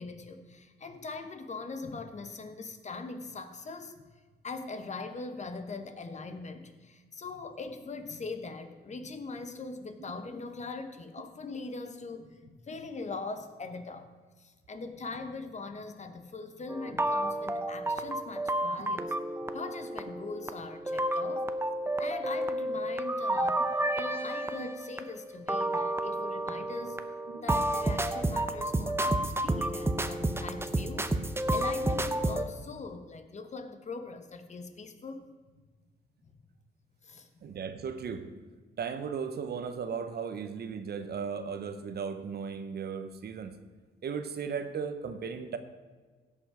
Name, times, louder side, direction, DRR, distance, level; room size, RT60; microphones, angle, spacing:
voice 1, 0.0-4.0 4.4-14.1 14.4-19.2 19.5-21.5 22.0-23.6 23.9-27.0 27.4-31.1 31.5-35.2 37.0-37.5, left 3 dB, 35° left, 8 dB, 1.1 m, -41 dB
sound 1, 16.7-32.4, right 1 dB, 10° right, 0.7 m, -31 dB
voice 2, 37.4-38.3 38.8-43.5 44.0-45.6, right 6 dB, 55° right, 9 dB, 0.9 m, -36 dB
16.0 x 5.5 x 5.0 m, 1.4 s
cardioid pair, 90°, 20 cm